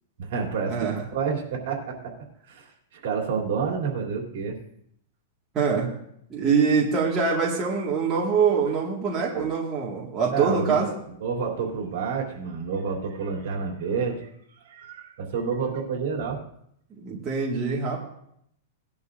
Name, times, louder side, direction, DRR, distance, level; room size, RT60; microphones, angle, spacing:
voice 1, 0.2-2.1 2.5-4.6 9.3-9.5 10.3-10.8 11.2-14.3 14.6-16.4, right 5 dB, 60° right, 0 dB, 3.2 m, -29 dB
voice 2, 0.7-1.0 5.5-5.9 6.3-10.9 17.0-18.0, right 5 dB, 20° right, -5 dB, 1.9 m, -24 dB
19.0 x 11.0 x 2.6 m, 0.73 s
supercardioid pair, 165°, 0 cm